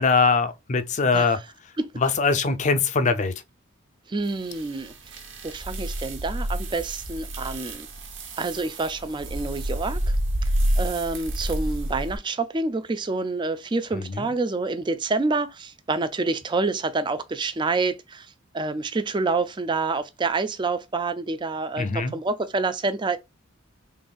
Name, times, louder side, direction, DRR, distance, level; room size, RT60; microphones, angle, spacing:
voice 1, 0.0-1.4 2.0-3.3 14.0-14.3 21.8-22.1, left 4 dB, 35° left, 0.5 m, -22 dB
voice 2, 4.1-4.9 5.4-7.9 8.4-10.2 10.8-23.2, right 3 dB, 20° right, 0.4 m, -27 dB
sound 1, 4.3-12.2, right 1 dB, 60° right, 1.3 m, -29 dB
3.9 x 3.5 x 2.3 m
head